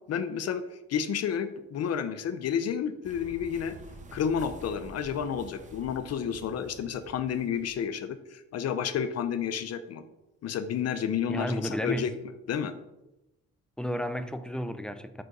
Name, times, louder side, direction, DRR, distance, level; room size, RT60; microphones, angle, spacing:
voice 1, 0.1-0.6 0.9-3.7 4.1-10.0 10.4-12.1 12.5-12.7, left 8 dB, 55° left, 0.5 m, -31 dB
sound 1, 3.0-8.0, right 2 dB, 25° right, 0.9 m, -48 dB
voice 2, 11.3-12.1 13.8-15.2, equal, 5° left, 0.4 m, -32 dB
5.5 x 3.7 x 5.2 m
cardioid pair, 90°, 30 cm